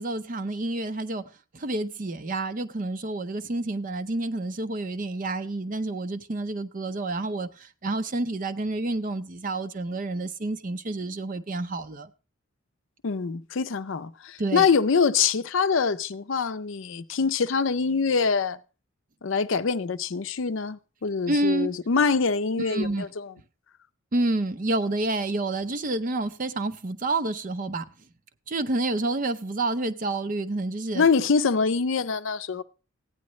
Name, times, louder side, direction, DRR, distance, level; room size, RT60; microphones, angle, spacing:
voice 1, 0.0-12.1 14.4-14.7 21.3-21.7 22.7-23.0 24.1-27.9 28.5-31.1, right 2 dB, 40° right, 0.6 m, -29 dB
voice 2, 13.0-18.6 19.2-23.3 30.9-32.6, left 5 dB, 65° left, 0.5 m, -24 dB
15.0 x 9.6 x 3.1 m
head